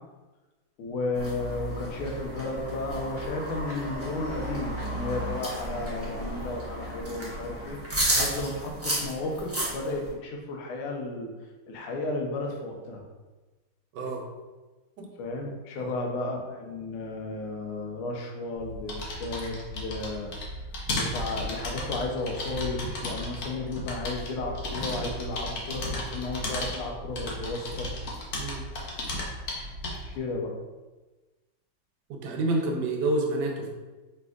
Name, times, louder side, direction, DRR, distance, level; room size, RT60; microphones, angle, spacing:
voice 1, 0.8-7.8 8.1-11.3 11.7-13.0 15.2-20.3 20.9-27.9 30.1-30.5, left 2 dB, 80° left, 1 dB, 1.6 m, -33 dB
sound 1, 1.1-10.1, right 1 dB, 20° right, 0.4 m, -33 dB
voice 2, 13.9-14.3 15.0-15.1 15.8-15.9 28.4-28.6 32.1-33.7, right 2 dB, 70° right, 1 dB, 1.1 m, -29 dB
sound 2, 18.6-30.2, left 1 dB, 60° left, 1.0 m, -35 dB
5.1 x 3.3 x 2.3 m, 1.2 s
omnidirectional pair, 2.3 m